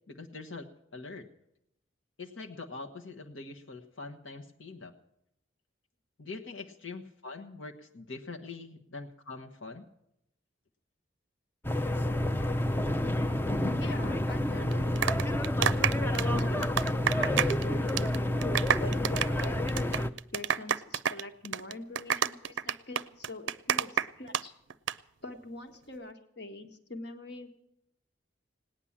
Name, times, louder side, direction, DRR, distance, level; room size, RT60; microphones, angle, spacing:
voice 1, 0.1-1.3 2.2-4.9 6.2-9.9, left 3 dB, 80° left, 2 dB, 1.2 m, -43 dB
sound 1, 11.6-20.1, left 1 dB, 10° left, 0.5 m, -29 dB
voice 2, 13.8-16.7 17.1-18.3 18.8-19.6 20.3-24.5 25.2-27.5, left 2 dB, 55° left, 7 dB, 1.5 m, -44 dB
sound 2, 14.7-17.6 17.9-18.2 18.4-24.4 24.7-24.9, right 8 dB, 70° right, 0.5 m, -29 dB
18.0 x 10.0 x 7.3 m, 0.80 s
head